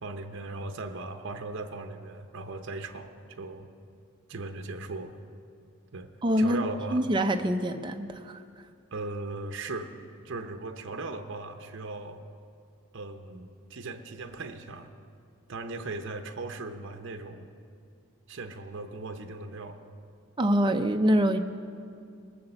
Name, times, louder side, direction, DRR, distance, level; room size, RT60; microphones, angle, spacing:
voice 1, 0.0-3.7 4.3-5.2 5.9-6.1 6.4-7.0 8.9-9.9 10.2-12.2 12.9-14.9 15.5-17.5 18.3-19.8, right 3 dB, 55° right, 7 dB, 0.8 m, -38 dB
voice 2, 6.2-6.6 6.9-8.4 20.4-21.4, equal, 20° right, 6 dB, 0.5 m, -25 dB
18.5 x 7.0 x 6.8 m, 2.4 s
head